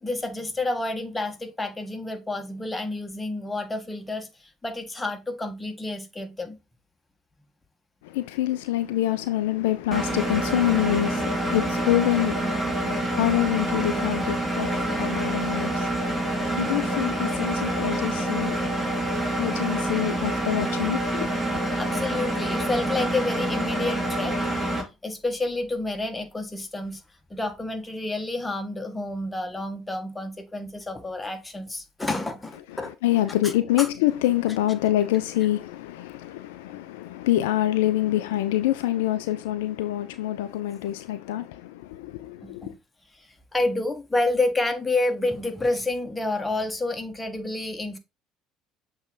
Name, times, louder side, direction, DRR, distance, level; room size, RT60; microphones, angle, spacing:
voice 1, 0.0-6.6 21.8-24.4 25.0-27.0 27.3-32.9 33.4-33.9 42.4-42.8 43.1-48.0, left 2 dB, 15° left, 1.4 m, -29 dB
voice 2, 8.0-18.8 19.4-21.3 33.0-42.7, left 14 dB, 70° left, 0.4 m, -26 dB
Engine, 9.9-24.8, right 1 dB, 15° right, 2.7 m, -27 dB
7.1 x 3.5 x 3.8 m
figure-of-eight pair, 60°, 0 cm